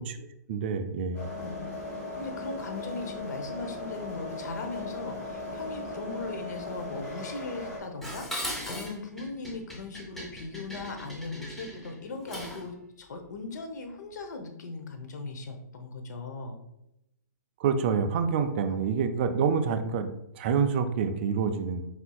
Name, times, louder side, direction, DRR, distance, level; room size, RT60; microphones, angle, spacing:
voice 1, 0.5-1.3 17.6-21.9, right 6 dB, 35° right, 7 dB, 0.4 m, -27 dB
sound 1, 1.1-7.8, left 2 dB, 20° left, 1.2 m, -38 dB
voice 2, 1.3-1.7 2.2-16.6 18.7-18.8, left 3 dB, 70° left, 5 dB, 0.8 m, -39 dB
Dishes pots and pans, 8.0-12.7, equal, ahead, 0.6 m, -39 dB
4.3 x 4.3 x 2.3 m, 0.83 s
hypercardioid pair, 155°, 10 cm